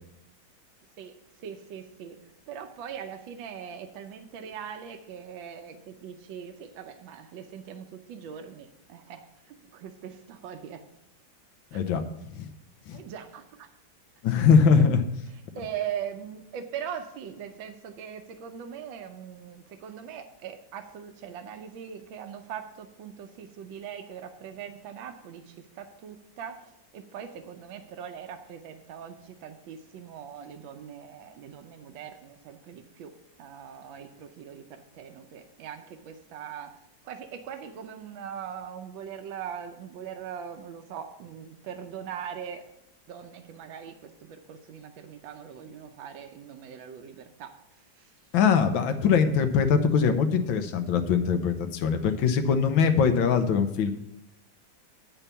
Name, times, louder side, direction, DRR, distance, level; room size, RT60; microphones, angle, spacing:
voice 1, 1.0-10.9 11.7-11.9 12.9-13.7 14.7-14.9 15.3-33.1 33.4-36.8 37.0-42.6 43.1-48.1, right 8 dB, 85° right, 7 dB, 1.5 m, -41 dB
voice 2, 11.7-12.0 12.3-12.5 12.9-13.0 14.2-15.0 48.3-53.9, left 6 dB, 85° left, 8 dB, 1.6 m, -22 dB
9.1 x 5.6 x 6.9 m, 0.86 s
omnidirectional pair, 2.1 m